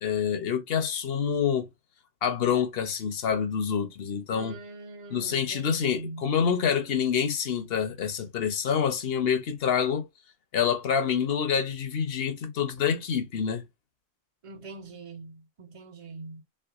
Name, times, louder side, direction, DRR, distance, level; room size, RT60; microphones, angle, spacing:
voice 1, 0.0-1.7 2.2-4.6 5.1-10.1 10.5-13.6, left 7 dB, 60° left, 0.9 m, -27 dB
voice 2, 4.3-6.3 14.4-16.4, right 3 dB, 35° right, 0.7 m, -43 dB
3.4 x 3.3 x 2.3 m
omnidirectional pair, 1.2 m